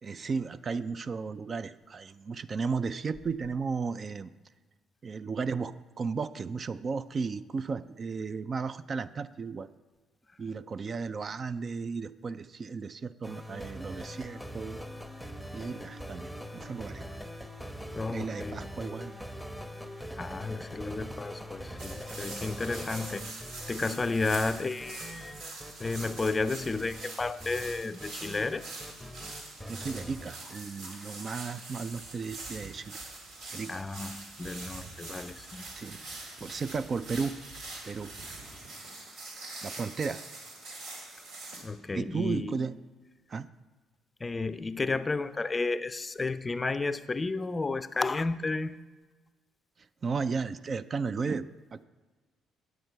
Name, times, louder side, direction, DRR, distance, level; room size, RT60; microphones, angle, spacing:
voice 1, 0.0-4.3 5.0-9.7 10.4-14.8 15.5-17.0 18.1-19.1 29.7-33.0 33.5-33.9 35.7-36.0 36.4-37.4 37.8-38.1 39.6-40.2 41.9-42.7 43.3-43.5 50.0-51.8, right 5 dB, 45° right, 14 dB, 0.3 m, -34 dB
sound 1, 13.2-30.3, equal, 5° right, 0.8 m, -42 dB
voice 2, 17.9-18.6 20.2-23.2 23.7-25.3 25.8-28.7 30.8-31.4 33.7-35.7 41.6-42.6 44.2-48.8, left 3 dB, 25° left, 14 dB, 0.4 m, -32 dB
sound 2, 21.8-41.6, right 2 dB, 80° right, 1.9 m, -44 dB
sound 3, 31.9-38.7, right 3 dB, 65° right, 2.6 m, -54 dB
9.5 x 7.9 x 4.5 m, 1.3 s
supercardioid pair, 70°, 0 cm